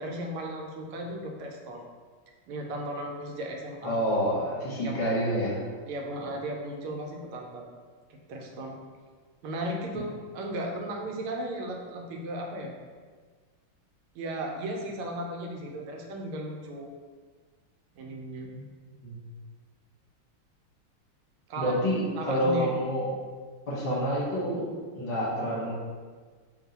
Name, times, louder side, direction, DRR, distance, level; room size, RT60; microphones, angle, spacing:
voice 1, 0.0-1.9 2.5-4.0 4.8-5.0 5.9-7.7 8.3-8.8 9.4-12.7 14.1-16.9 17.9-18.5 21.5-21.8 22.2-22.7, right 1 dB, 85° right, 1 dB, 1.5 m, -35 dB
voice 2, 3.8-5.6 19.0-19.1 21.6-23.1 23.7-24.6 24.9-25.7, equal, 40° left, -6 dB, 0.9 m, -28 dB
3.5 x 2.6 x 4.0 m, 1.5 s
omnidirectional pair, 2.3 m